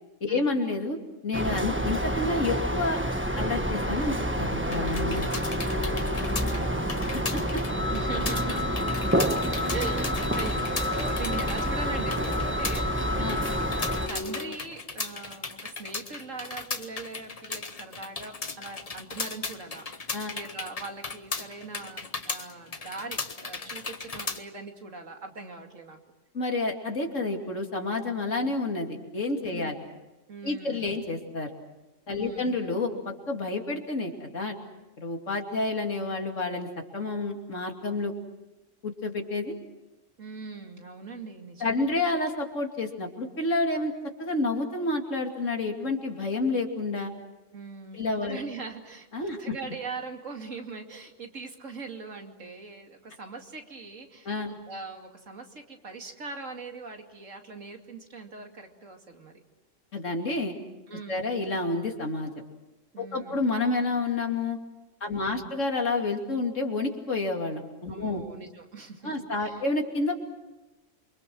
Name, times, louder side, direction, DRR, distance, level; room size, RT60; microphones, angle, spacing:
voice 1, 0.2-3.0 3.4-5.3 7.3-7.6 13.2-13.4 20.1-20.3 26.3-29.8 30.4-31.5 32.1-34.6 35.0-38.1 38.8-39.5 41.6-43.9 44.2-47.1 47.9-48.4 49.1-49.5 54.2-54.5 59.9-60.6 61.1-62.3 63.0-64.6 65.0-68.2 69.0-70.2, left 2 dB, 75° left, 2 dB, 3.1 m, -29 dB
sound 1, 1.3-14.1, equal, 10° right, 1.3 m, -28 dB
sound 2, 4.7-24.4, left 4 dB, 30° left, 1.1 m, -37 dB
sound 3, 4.8-14.6, left 1 dB, 15° left, 1.6 m, -39 dB
voice 2, 5.8-6.9 7.9-8.8 9.7-13.2 13.9-26.0 29.5-29.7 30.3-31.0 32.1-32.6 40.2-42.0 47.5-59.3 60.9-61.3 62.9-63.5 65.0-65.5 67.9-69.6, right 4 dB, 80° right, 3 dB, 2.9 m, -41 dB
28.5 x 24.5 x 6.2 m, 1.1 s
omnidirectional pair, 1.3 m